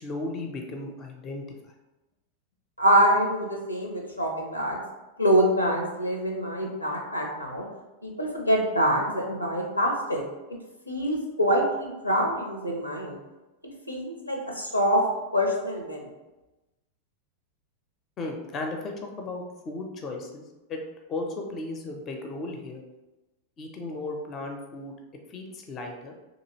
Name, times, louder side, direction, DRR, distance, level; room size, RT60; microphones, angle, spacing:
voice 1, 0.0-1.4 18.2-20.4 20.7-20.8 21.1-22.8 23.6-24.9 25.3-26.1, left 2 dB, 30° left, 2 dB, 0.4 m, -35 dB
voice 2, 2.8-4.8 5.2-7.6 8.0-10.2 10.9-13.2 13.9-15.0 15.3-16.1, equal, 85° left, 0 dB, 0.5 m, -25 dB
2.8 x 2.7 x 2.8 m, 1.1 s
figure-of-eight pair, 90°, 0 cm